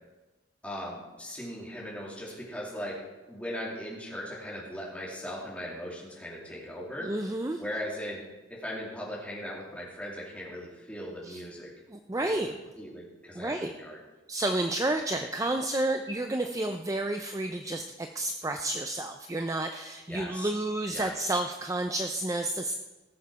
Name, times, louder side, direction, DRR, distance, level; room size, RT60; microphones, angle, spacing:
voice 1, 0.6-7.1 7.6-8.2 8.5-11.7 12.2-12.3 12.8-14.0 15.1-15.3 20.1-20.5 20.9-21.1, equal, 5° left, -5 dB, 2.8 m, -39 dB
voice 2, 7.0-7.6 11.2-11.4 11.9-12.6 13.3-13.7 14.3-22.7, right 1 dB, 15° right, 6 dB, 0.4 m, -30 dB
18.5 x 7.1 x 4.8 m, 1.2 s
head